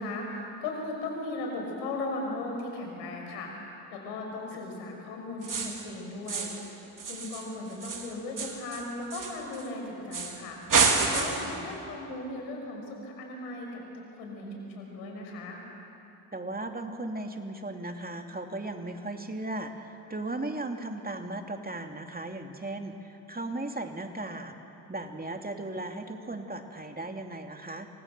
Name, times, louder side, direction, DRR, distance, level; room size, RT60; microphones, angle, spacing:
voice 1, 0.0-3.6 3.9-6.5 7.0-10.6 11.1-15.6, left 2 dB, 80° left, 1 dB, 6.0 m, -37 dB
sound 1, 5.4-5.9 6.3-6.7 7.0-9.7 10.1-10.4 10.7-11.6, right 4 dB, 40° right, 3.8 m, -29 dB
voice 2, 16.3-24.5 24.9-27.9, right 2 dB, 20° right, 4 dB, 2.7 m, -36 dB
28.5 x 25.0 x 6.9 m, 2.8 s
hypercardioid pair, 55°, 49 cm